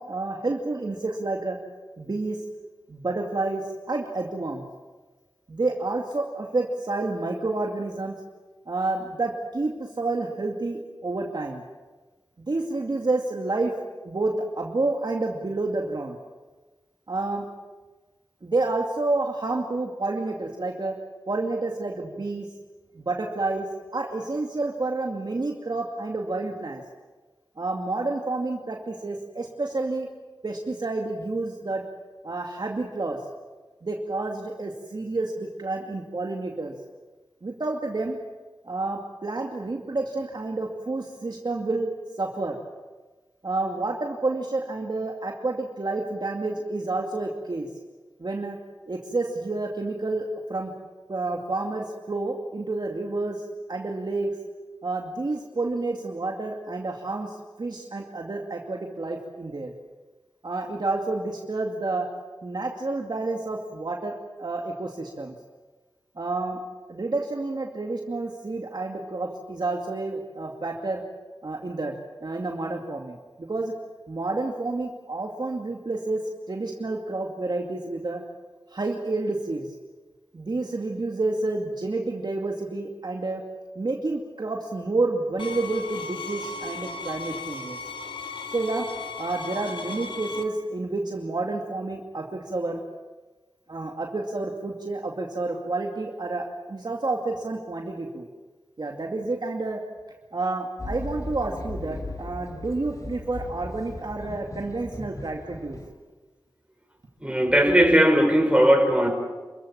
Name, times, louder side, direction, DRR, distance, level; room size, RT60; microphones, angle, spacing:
voice 1, 0.0-1.6 2.0-2.4 2.9-3.6 3.9-4.7 5.5-8.1 8.7-11.6 12.4-13.7 14.0-16.2 17.1-17.4 18.4-20.9 21.3-22.5 22.9-23.7 23.9-26.8 27.6-30.1 30.4-31.8 32.2-33.2 33.8-36.7 37.4-38.2 38.7-41.9 42.2-42.6 43.4-47.7 48.2-48.6 48.9-50.7 51.1-53.4 53.7-54.3 54.8-59.7 60.4-62.1 62.4-65.3 66.2-66.6 66.9-71.0 71.4-71.9 72.2-73.7 74.1-76.2 76.5-78.2 78.7-79.7 80.3-83.4 83.8-87.8 88.5-88.9 89.2-92.8 93.7-98.3 98.8-99.8 100.3-105.8, right 2 dB, 60° right, 1 dB, 2.4 m, -29 dB
sound 1, 85.4-90.4, left 4 dB, 75° left, 1.8 m, -36 dB
sound 2, 100.8-105.9, left 1 dB, 40° left, 4.3 m, -37 dB
voice 2, 107.2-109.1, equal, 15° right, 3 dB, 5.7 m, -18 dB
28.5 x 15.0 x 8.8 m, 1.3 s
wide cardioid pair, 60°, 8 cm